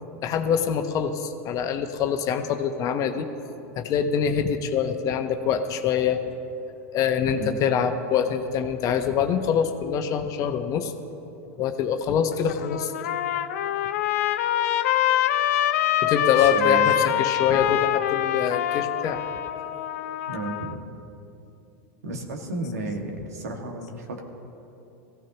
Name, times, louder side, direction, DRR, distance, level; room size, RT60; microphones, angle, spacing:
voice 1, 0.2-3.3 3.8-6.2 6.9-10.9 11.6-12.9 16.0-19.2, left 7 dB, 45° left, 7 dB, 1.0 m, -25 dB
voice 2, 7.3-7.7 16.4-17.0 17.5-17.6 20.3-20.8 22.0-24.2, right 2 dB, 90° right, 2 dB, 1.9 m, -33 dB
Trumpet, 12.3-20.7, left 12 dB, 75° left, 0.6 m, -25 dB
18.5 x 15.5 x 3.0 m, 2.8 s
hypercardioid pair, 105°, 8 cm